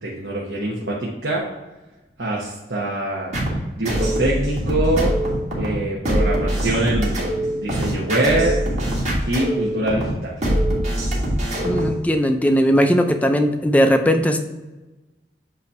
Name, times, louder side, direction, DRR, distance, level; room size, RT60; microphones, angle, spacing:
voice 1, 0.0-1.5 2.2-3.3 3.8-5.2 5.6-8.6 9.3-10.4, right 1 dB, 75° right, -4 dB, 1.1 m, -24 dB
sound 1, 3.3-12.0, right 1 dB, 40° right, 1.6 m, -23 dB
voice 2, 11.6-14.4, equal, 10° left, 6 dB, 0.4 m, -18 dB
8.1 x 2.8 x 4.6 m, 1.1 s
head